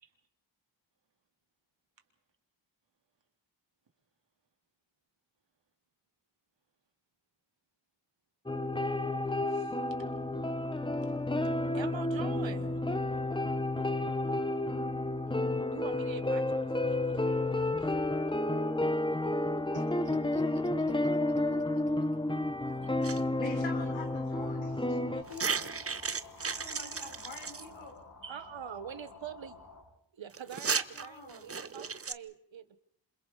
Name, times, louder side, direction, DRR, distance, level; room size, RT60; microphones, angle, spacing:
sound 1, 8.5-25.2, left 2 dB, 10° left, 0.9 m, -31 dB
sound 2, 9.9-29.8, left 3 dB, 50° left, 6.6 m, -55 dB
voice 1, 11.7-12.8 15.7-17.9 28.3-29.6 30.1-32.8, right 8 dB, 90° right, 12 dB, 1.4 m, -45 dB
voice 2, 19.7-20.4 20.9-21.1 21.5-22.4 28.2-28.4, right 5 dB, 75° right, 3 dB, 3.7 m, -50 dB
sound 3, 23.0-23.2 25.2-27.7 30.3-32.1, right 5 dB, 30° right, 0.8 m, -35 dB
voice 3, 23.4-28.0 30.9-31.6, left 3 dB, 85° left, 3 dB, 4.6 m, -46 dB
27.5 x 27.0 x 4.1 m, 0.65 s
wide cardioid pair, 90°, 44 cm